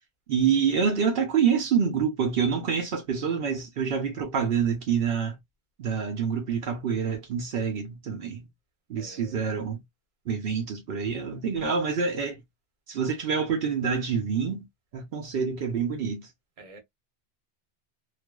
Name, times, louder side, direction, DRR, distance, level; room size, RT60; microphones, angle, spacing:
voice 1, 0.3-5.4 5.8-8.5 8.9-9.8 10.3-12.4 12.9-14.7 14.9-16.3, right 6 dB, 70° right, 0.8 m, -27 dB
voice 2, 9.0-9.4 16.6-16.8, right 3 dB, 40° right, 0.7 m, -48 dB
2.4 x 2.4 x 2.2 m
omnidirectional pair, 1.1 m